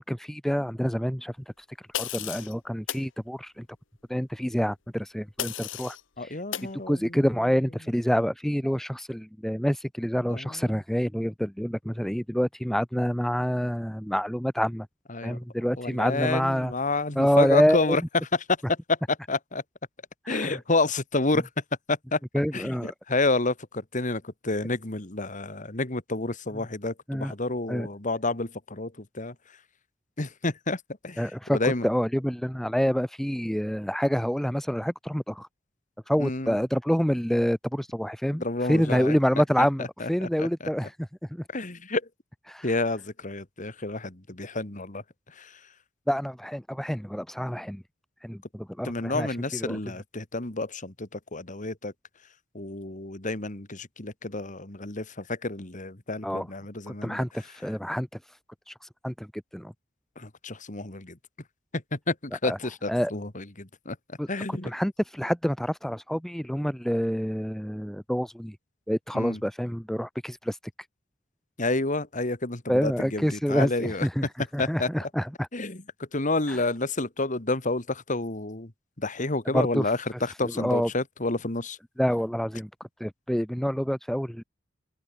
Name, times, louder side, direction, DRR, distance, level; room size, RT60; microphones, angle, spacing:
voice 1, 0.0-1.3 1.7-3.7 4.1-6.4 6.9-14.9 15.2-16.7 17.2-18.0 20.3-20.6 22.3-22.9 27.1-27.3 27.7-27.9 31.2-35.5 36.1-41.4 42.5-42.7 46.1-47.8 48.2-49.3 49.5-49.8 56.2-56.5 56.9-58.1 58.7-59.7 62.4-62.6 62.9-63.1 64.2-68.6 68.9-70.6 72.7-75.5 76.5-76.6 79.5-79.9 80.6-80.9 82.0-82.7 83.0-84.4, equal, ahead, 0.7 m, -27 dB
sound 1, 1.9-2.5 2.9-3.1 5.4-6.0 6.5-6.7, left 10 dB, 70° left, 1.4 m, -33 dB
voice 2, 6.2-7.2 10.3-10.8 15.1-15.4 15.8-18.0 18.9-19.6 20.3-21.5 21.9-22.2 22.5-29.3 30.2-31.2 31.5-31.9 36.2-36.6 38.4-39.2 39.8-40.7 41.5-42.0 42.6-45.0 45.4-45.6 48.8-51.9 52.5-57.2 60.2-61.2 61.7-64.0 64.3-64.7 69.1-69.4 71.6-74.1 74.6-74.9 75.5-78.7 79.0-81.8, left 2 dB, 40° left, 2.3 m, -30 dB
open air
head